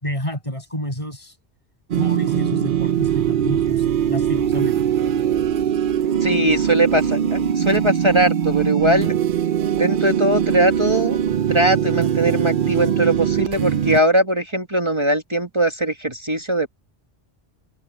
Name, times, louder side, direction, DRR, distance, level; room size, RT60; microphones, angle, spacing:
voice 1, 0.0-1.3 2.0-4.8, equal, 30° left, 7.0 m, -29 dB
sound 1, 1.9-14.0, right 9 dB, 55° right, 0.8 m, -21 dB
voice 2, 6.2-9.1 9.7-11.2 11.5-16.7, right 1 dB, 25° right, 1.5 m, -20 dB
omnidirectional pair, 1.1 m